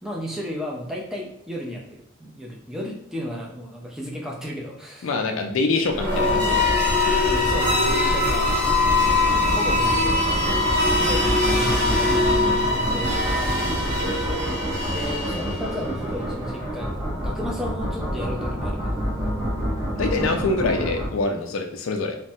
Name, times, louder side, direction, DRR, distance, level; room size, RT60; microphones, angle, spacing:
voice 1, 0.0-5.1 6.1-6.4 7.3-8.9 9.3-10.3 10.9-13.5 14.1-19.0, equal, 5° right, -2 dB, 0.4 m, -34 dB
voice 2, 5.0-6.6 19.9-22.2, left 3 dB, 70° left, 4 dB, 0.4 m, -25 dB
sound 1, 5.9-15.8, left 2 dB, 50° right, 0.9 m, -22 dB
sound 2, 6.3-21.1, equal, 20° right, 0.8 m, -28 dB
3.1 x 2.2 x 2.7 m, 0.73 s
head